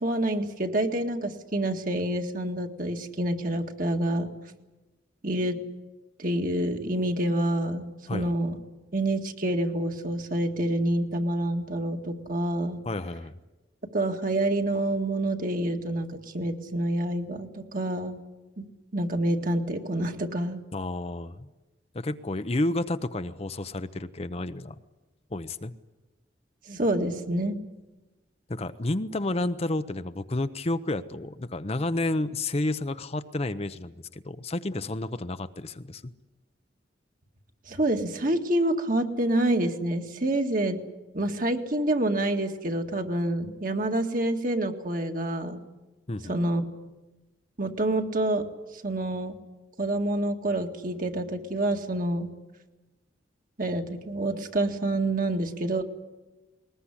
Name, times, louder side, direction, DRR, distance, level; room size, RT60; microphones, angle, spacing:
voice 1, 0.0-4.3 5.2-5.6 6.2-8.6 8.9-12.8 13.9-18.2 18.6-18.7 18.9-20.6 26.7-27.6 37.7-40.8 41.1-45.6 46.3-46.6 47.6-48.4 48.8-49.4 49.8-52.3 53.6-55.8, right 1 dB, 50° right, 4 dB, 2.0 m, -27 dB
voice 2, 12.9-13.4 20.7-21.5 21.9-24.7 25.3-25.7 28.5-36.1 46.1-46.3, left 2 dB, 35° left, 11 dB, 0.7 m, -31 dB
20.5 x 20.5 x 10.0 m, 1.1 s
head